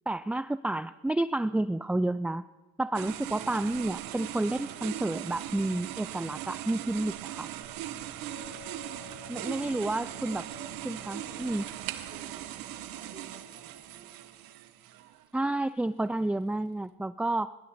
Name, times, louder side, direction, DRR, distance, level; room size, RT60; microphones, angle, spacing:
voice 1, 0.1-2.5 2.8-7.5 9.3-10.4 10.8-11.6 15.3-17.5, right 2 dB, 5° right, 15 dB, 0.3 m, -30 dB
sound 1, 2.9-15.2, right 12 dB, 85° right, 0.9 m, -40 dB
Chink clink, 8.3-12.7, left 18 dB, 55° left, 1.6 m, -54 dB
voice 2, 9.4-10.8 11.1-14.1, right 1 dB, 20° right, -1 dB, 6.3 m, -54 dB
22.0 x 11.5 x 4.2 m, 1.2 s
supercardioid pair, 60°, 34 cm